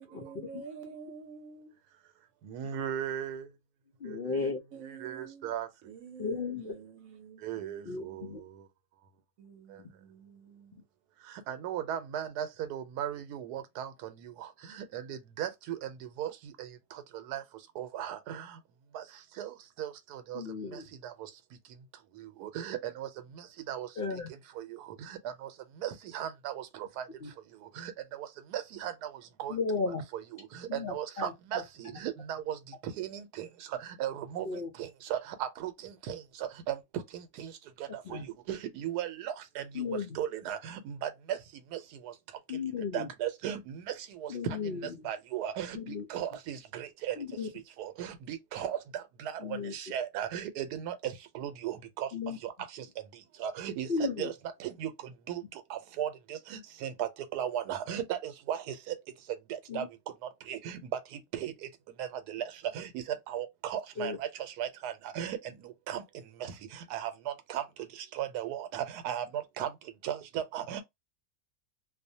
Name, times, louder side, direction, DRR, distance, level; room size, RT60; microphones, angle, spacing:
voice 1, 0.0-1.8 4.4-5.5 5.8-8.2 9.4-10.9, right 6 dB, 65° right, 1.0 m, -49 dB
voice 2, 2.4-3.5 4.0-4.4 4.8-5.7 7.4-8.6 9.7-9.8 11.3-17.4 17.8-18.6 18.9-19.0 19.4-20.4 20.7-21.3 22.1-24.2 24.5-25.5 25.8-27.0 27.6-29.6 30.1-41.4 41.7-42.1 42.9-47.2 47.8-52.1 52.4-52.9 53.4-54.3 54.6-59.0 59.5-59.9 60.2-61.7 62.0-66.0 66.4-67.6 67.9-69.7 70.0-70.8, right 10 dB, 85° right, 1.1 m, -37 dB
voice 3, 4.0-4.6 6.2-6.7 7.9-8.4 20.3-20.8 24.0-24.3 27.2-27.3 29.5-30.0 30.7-31.6 34.4-34.7 38.0-38.3 39.7-40.2 42.5-43.1 44.3-45.1 45.7-46.0 47.2-47.5 49.4-49.7 52.1-52.4 53.9-54.3 59.7-59.9 64.0-64.2, left 4 dB, 70° left, 0.5 m, -35 dB
2.6 x 2.1 x 2.6 m
omnidirectional pair, 1.6 m